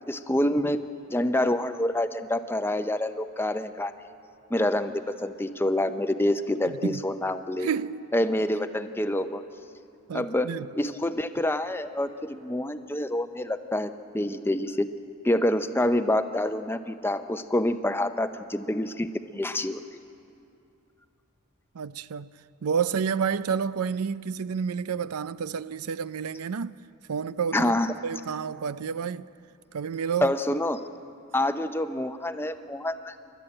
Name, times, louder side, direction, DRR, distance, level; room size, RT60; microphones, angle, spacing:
voice 1, 0.1-0.8 1.1-3.9 4.5-7.7 8.1-9.4 10.1-14.9 15.2-19.1 19.3-19.8 27.5-27.9 30.2-30.8 31.3-33.1, left 1 dB, 10° left, 0.6 m, -27 dB
voice 2, 6.7-7.0 7.6-8.1 10.1-10.7 21.7-22.3 22.6-26.8 27.1-27.7 28.0-29.3 29.7-30.3, right 6 dB, 85° right, 0.5 m, -30 dB
29.5 x 12.5 x 8.8 m
head